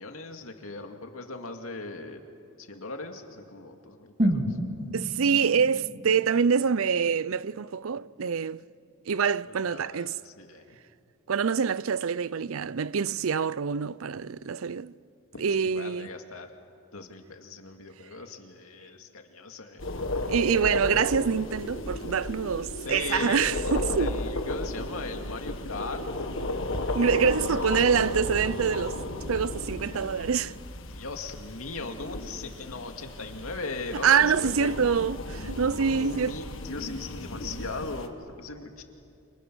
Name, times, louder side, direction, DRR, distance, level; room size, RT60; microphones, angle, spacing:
voice 1, 0.0-2.2 2.6-4.6 9.5-10.8 15.3-16.5 16.9-19.9 22.7-26.2 26.9-28.0 30.9-34.9 35.9-38.8, left 3 dB, 85° left, 2.3 m, -39 dB
sound 1, 4.2-8.2 8.5-8.6, equal, 35° right, 2.3 m, -32 dB
voice 2, 4.9-8.6 9.1-10.2 11.3-14.9 15.4-16.1 20.3-24.2 26.9-29.0 29.3-30.5 33.9-36.3, right 6 dB, 75° right, 0.5 m, -25 dB
sound 2, 19.8-38.1, left 1 dB, 65° left, 1.7 m, -34 dB
30.0 x 27.0 x 6.3 m
head